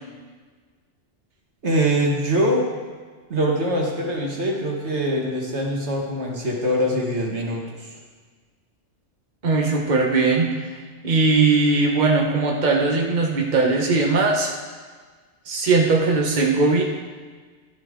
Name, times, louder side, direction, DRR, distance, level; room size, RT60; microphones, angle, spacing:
voice 1, 1.6-2.7 3.3-7.9, equal, 70° right, -1 dB, 2.1 m, -23 dB
voice 2, 9.4-10.7 11.0-14.5 15.5-16.8, right 3 dB, 40° right, -1 dB, 1.3 m, -19 dB
13.5 x 12.0 x 3.7 m, 1.5 s
omnidirectional pair, 1.2 m